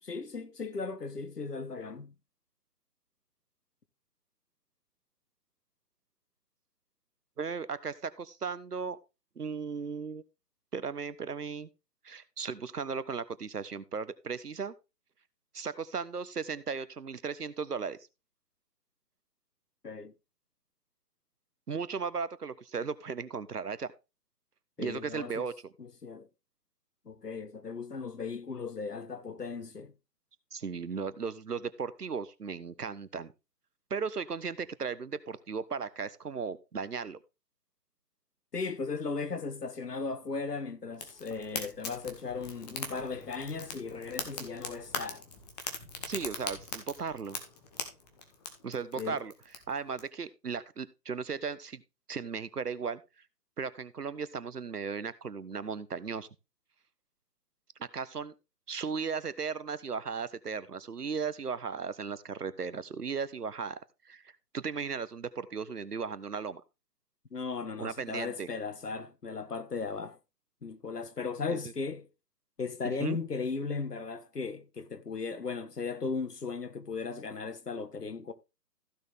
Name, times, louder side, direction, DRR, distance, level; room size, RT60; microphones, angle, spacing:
voice 1, 0.0-2.1 19.8-20.1 24.8-25.5 25.8-26.3 27.0-29.9 38.5-45.2 49.0-49.2 67.3-70.2 70.6-72.1 72.6-78.3, left 4 dB, 70° left, 1.7 m, -37 dB
voice 2, 7.4-9.0 9.4-10.2 10.7-11.7 12.0-14.7 15.5-18.0 21.7-23.9 24.8-25.7 30.5-33.3 33.9-37.2 46.0-47.4 48.6-49.3 49.7-51.8 52.1-53.0 53.6-56.3 57.8-58.3 58.7-63.8 64.1-66.6 67.8-68.5 71.5-71.6 73.0-73.2, right 5 dB, 70° right, 1.3 m, -36 dB
Fire, 40.9-50.0, left 5 dB, 25° left, 1.9 m, -41 dB
15.5 x 6.5 x 3.5 m
figure-of-eight pair, 145°, 49 cm